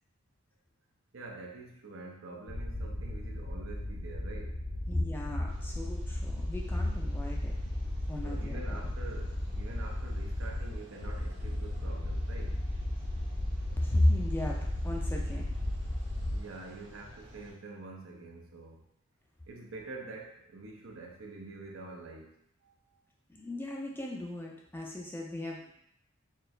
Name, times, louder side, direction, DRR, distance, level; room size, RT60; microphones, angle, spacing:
voice 1, 1.1-4.6 7.8-7.9 8.2-12.6 16.3-18.8 19.5-22.3 22.6-22.7, right 3 dB, 75° right, 0 dB, 0.7 m, -46 dB
sound 1, 2.5-16.4, left 1 dB, 65° left, 0.6 m, -35 dB
voice 2, 4.9-7.5 8.1-8.8 13.8-15.5 23.3-25.7, left 1 dB, 10° left, -1 dB, 0.4 m, -33 dB
sound 2, 5.5-17.5, equal, 55° right, 1.1 m, -53 dB
4.4 x 2.3 x 3.2 m, 0.74 s
head